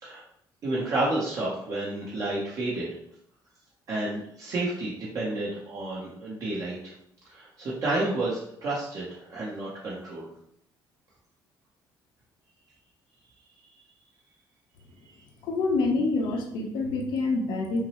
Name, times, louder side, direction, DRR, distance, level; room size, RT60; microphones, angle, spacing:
voice 1, 0.6-2.9 3.9-6.9 7.3-10.3 15.0-15.2, right 2 dB, 45° right, -6 dB, 0.8 m, -30 dB
voice 2, 15.4-17.8, left 3 dB, 70° left, 2 dB, 0.8 m, -26 dB
5.8 x 2.0 x 3.0 m, 0.72 s
cardioid pair, 165°, 8 cm